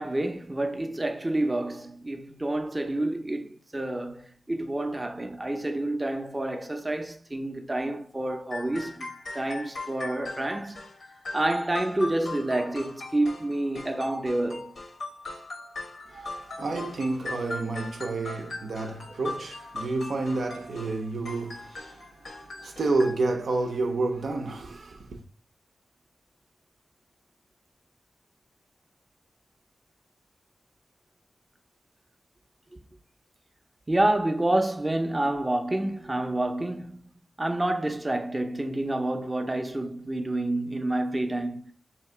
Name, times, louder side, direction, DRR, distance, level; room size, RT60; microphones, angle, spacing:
voice 1, 0.0-9.1 9.3-10.8 11.3-14.7 33.9-37.1 37.4-41.7, right 1 dB, 25° right, 0.6 m, -28 dB
sound 1, 8.5-23.1, left 3 dB, 75° left, 0.9 m, -40 dB
voice 2, 16.1-25.2, right 3 dB, 75° right, 0.6 m, -30 dB
2.8 x 2.8 x 4.4 m
cardioid pair, 70°, 0 cm